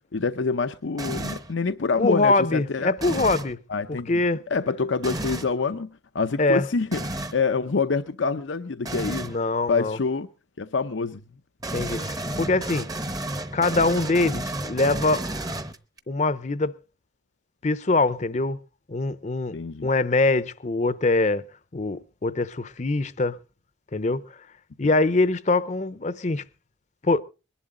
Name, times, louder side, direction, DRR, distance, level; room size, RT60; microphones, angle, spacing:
voice 1, 0.1-2.9 3.7-4.2 4.5-9.4 9.7-10.3 10.6-11.2 19.5-19.9, left 4 dB, 90° left, 0.7 m, -26 dB
sound 1, 1.0-1.5 3.0-3.5 5.0-5.5 6.9-7.4 8.9-9.4 11.6-16.0, right 1 dB, 20° right, 0.8 m, -32 dB
voice 2, 2.0-3.6 3.9-4.4 6.4-6.7 9.2-10.0 11.7-12.9 13.5-15.2 16.1-16.7 17.6-18.6 18.9-19.5 19.8-21.4 21.7-23.4 23.9-24.2 24.8-26.4 27.0-27.2, left 3 dB, 40° left, 0.6 m, -23 dB
22.0 x 11.5 x 3.8 m
head